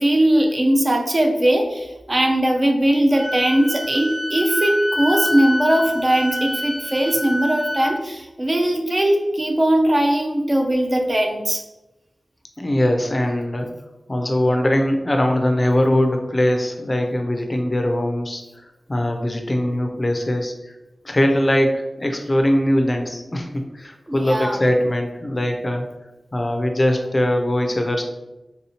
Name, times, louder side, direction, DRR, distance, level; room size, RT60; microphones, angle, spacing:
voice 1, 0.0-11.6 24.1-24.6, right 1 dB, 35° right, 3 dB, 0.4 m, -19 dB
Wind instrument woodwind instrument, 3.1-7.9, left 1 dB, 15° right, 0.9 m, -26 dB
voice 2, 12.6-13.7 14.1-18.4 18.9-20.7 21.0-25.8 26.3-28.0, left 1 dB, 30° left, 3 dB, 0.4 m, -21 dB
3.5 x 2.7 x 2.8 m, 1.0 s
wide cardioid pair, 85°, 0 cm